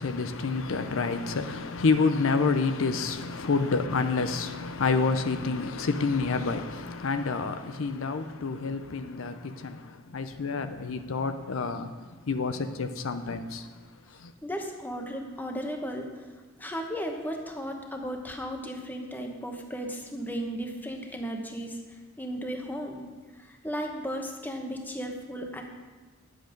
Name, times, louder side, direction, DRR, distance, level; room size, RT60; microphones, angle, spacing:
voice 1, 0.0-13.7 14.1-14.3, left 4 dB, 75° left, 0.6 m, -28 dB
voice 2, 14.4-16.1 16.6-21.8 22.2-23.1 23.4-25.6, equal, 10° left, 1.1 m, -35 dB
10.5 x 7.9 x 5.2 m
head